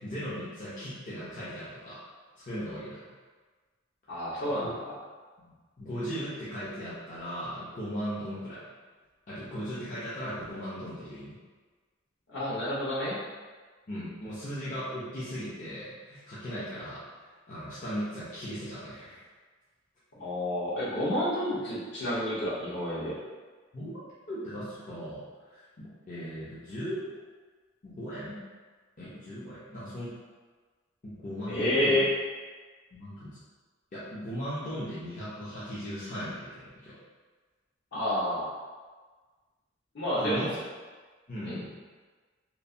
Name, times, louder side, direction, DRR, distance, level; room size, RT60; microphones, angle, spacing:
voice 1, 0.0-2.0 2.4-3.1 4.5-4.7 5.4-8.6 9.3-11.4 13.9-19.2 23.7-24.0 24.3-27.1 27.8-28.4 29.0-30.1 31.0-32.0 32.9-33.3 33.9-37.0 40.2-40.5 41.3-41.7, equal, 40° left, -11 dB, 0.6 m, -38 dB
voice 2, 4.1-4.9 12.3-13.2 20.2-23.1 31.5-32.1 37.9-38.5 39.9-40.6 41.4-41.6, left 1 dB, 65° left, -9 dB, 1.0 m, -29 dB
3.1 x 2.1 x 2.6 m, 1.4 s
head